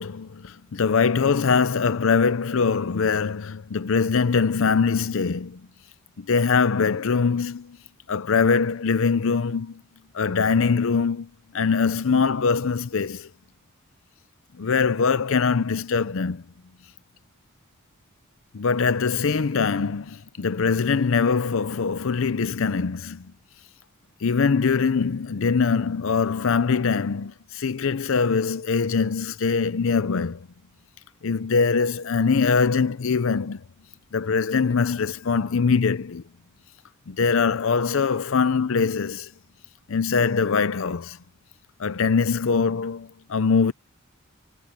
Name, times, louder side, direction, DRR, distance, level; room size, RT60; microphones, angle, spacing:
voice 1, 0.0-5.6 6.2-7.8 8.1-9.8 10.1-11.3 11.5-13.3 14.6-16.4 18.5-23.3 24.2-30.5 31.2-33.6 34.1-36.2 37.1-39.3 39.9-41.2 41.8-43.7, left 5 dB, 70° left, 0.6 m, -22 dB
head